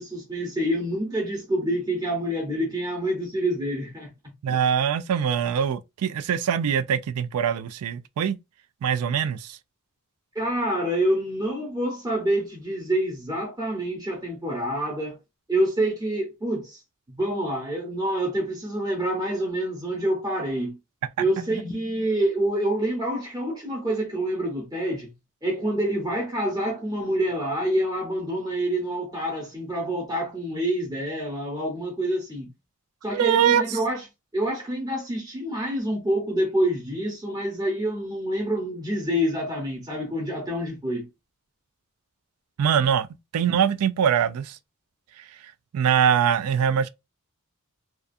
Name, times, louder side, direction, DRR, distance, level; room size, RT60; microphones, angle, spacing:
voice 1, 0.0-4.1 4.5-4.6 10.3-15.2 15.5-16.8 17.1-20.8 21.2-25.1 25.4-32.5 33.0-34.0 34.3-41.1, right 1 dB, 15° right, 0.8 m, -27 dB
voice 2, 4.4-8.4 8.8-9.6 33.1-33.8 42.6-43.1 43.3-44.6 45.7-46.9, right 8 dB, 75° right, 0.3 m, -23 dB
2.4 x 2.3 x 2.5 m
head